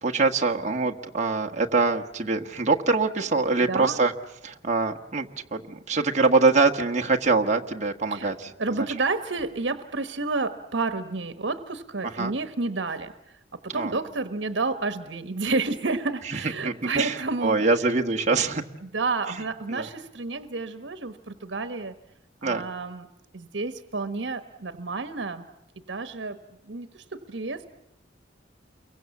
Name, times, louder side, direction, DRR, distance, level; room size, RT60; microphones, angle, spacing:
voice 1, 0.0-4.1 4.4-8.5 8.8-8.9 12.2-12.3 13.7-14.0 16.3-18.6 19.3-19.4 19.7-19.9 22.4-22.6, right 3 dB, 40° right, 3 dB, 1.5 m, -24 dB
voice 2, 3.7-4.0 8.1-8.3 8.6-13.1 13.6-17.7 18.8-21.9 22.4-23.1 23.3-25.5 25.9-26.4 26.7-27.6, right 3 dB, 80° right, 10 dB, 1.2 m, -30 dB
29.5 x 23.5 x 7.2 m, 0.88 s
head